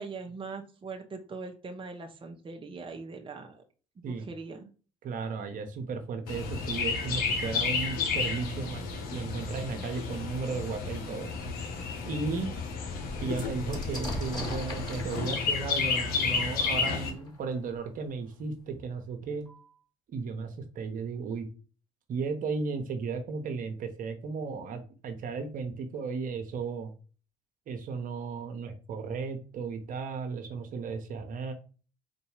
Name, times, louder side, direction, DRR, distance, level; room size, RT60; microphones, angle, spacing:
voice 1, 0.0-3.6 4.1-4.7, right 4 dB, 30° right, 3 dB, 0.8 m, -41 dB
voice 2, 5.0-8.8 9.1-11.3 12.1-12.5 13.2-19.5 20.1-21.5 22.1-26.9 27.7-31.5, right 4 dB, 55° right, 6 dB, 1.0 m, -35 dB
Chirp tweet, 6.3-17.1, left 5 dB, 65° left, 1.1 m, -32 dB
sound 1, 11.9-12.0 12.2-17.8 18.7-18.8 19.1-19.7, left 1 dB, 25° left, 2.5 m, -41 dB
4.0 x 2.6 x 4.8 m, 0.36 s
hypercardioid pair, 60°, 16 cm